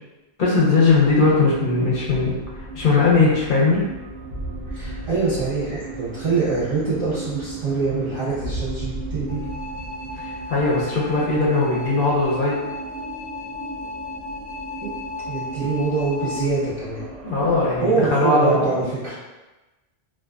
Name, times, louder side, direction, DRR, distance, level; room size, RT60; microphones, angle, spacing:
voice 1, 0.4-2.3 2.7-3.8 10.2-12.6 17.2-18.7, left 3 dB, 60° left, -5 dB, 0.7 m, -19 dB
sound 1, 0.8-17.9, right 3 dB, 90° right, 0.9 m, -36 dB
voice 2, 4.7-9.4 14.8-14.9 15.3-17.0 17.8-19.2, right 3 dB, 35° right, -9 dB, 0.5 m, -24 dB
sound 2, 9.3-16.5, left 3 dB, 10° left, 0.7 m, -35 dB
2.4 x 2.2 x 2.3 m, 1.1 s
omnidirectional pair, 1.1 m